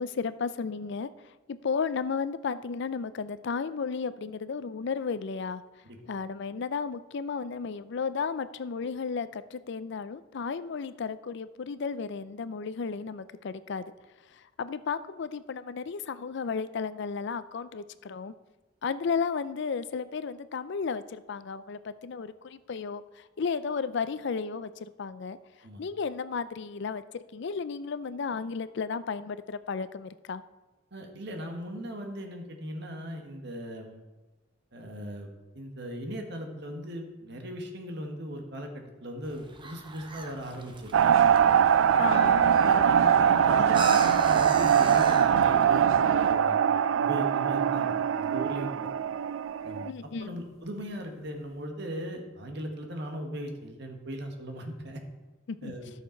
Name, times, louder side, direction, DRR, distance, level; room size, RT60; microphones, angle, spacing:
voice 1, 0.0-5.6 6.1-13.9 14.3-18.3 18.8-25.4 25.8-30.4 42.0-42.5 49.8-50.4 55.5-55.7, left 5 dB, 65° left, 14 dB, 0.5 m, -33 dB
voice 2, 30.9-34.0 34.7-41.2 41.9-42.1 42.5-48.9 49.6-49.9 50.2-55.0 55.6-55.9, equal, 60° right, 3 dB, 1.5 m, -39 dB
sound 1, 39.2-45.7, right 4 dB, 25° right, 0.8 m, -39 dB
sound 2, 40.9-49.9, right 8 dB, 90° right, 0.3 m, -22 dB
sound 3, 42.0-51.3, left 4 dB, 35° left, 1.4 m, -49 dB
12.0 x 6.6 x 4.5 m, 1.1 s
head